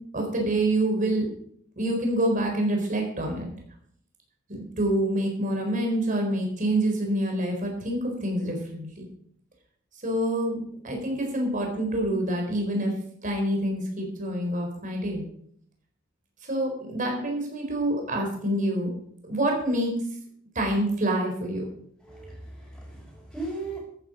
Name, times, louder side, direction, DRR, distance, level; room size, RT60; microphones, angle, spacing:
voice 1, 0.1-1.3 1.8-3.5 4.5-9.0 10.0-12.9 13.2-15.2 16.5-18.9 19.2-19.9 20.5-21.6, right 1 dB, 40° right, 1 dB, 4.2 m, -27 dB
voice 2, 22.0-23.8, right 2 dB, ahead, -7 dB, 5.1 m, -37 dB
13.5 x 10.0 x 5.1 m, 0.65 s
head